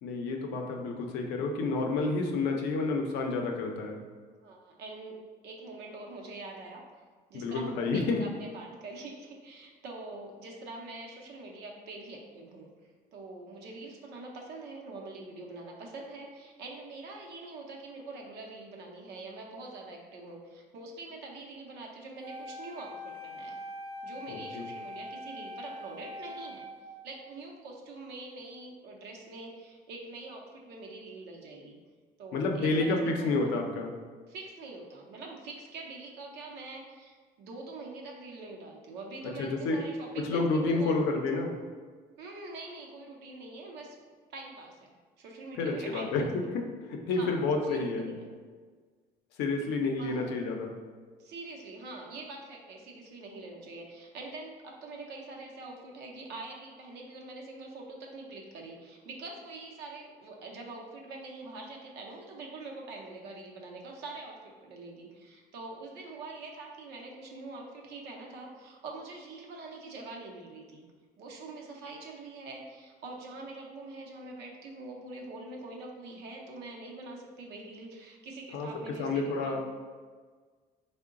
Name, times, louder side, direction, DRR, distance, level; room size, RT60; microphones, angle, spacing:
voice 1, 0.0-4.0 7.3-8.2 24.5-24.6 32.3-33.9 39.4-39.8 40.2-41.6 45.6-48.1 49.4-50.8 78.5-79.6, left 3 dB, 90° left, 2 dB, 0.5 m, -29 dB
voice 2, 4.4-5.2 5.4-6.8 7.3-12.7 13.1-23.5 24.0-26.7 27.0-31.8 32.2-33.5 34.3-41.0 42.2-44.0 44.3-46.3 47.1-48.3 50.0-50.3 51.2-70.9 71.2-79.6, right 2 dB, 80° right, 0 dB, 0.6 m, -44 dB
Wind instrument woodwind instrument, 22.2-27.3, left 1 dB, 30° right, 0.5 m, -43 dB
3.7 x 2.1 x 3.6 m, 1.5 s
cardioid pair, 110°, 17 cm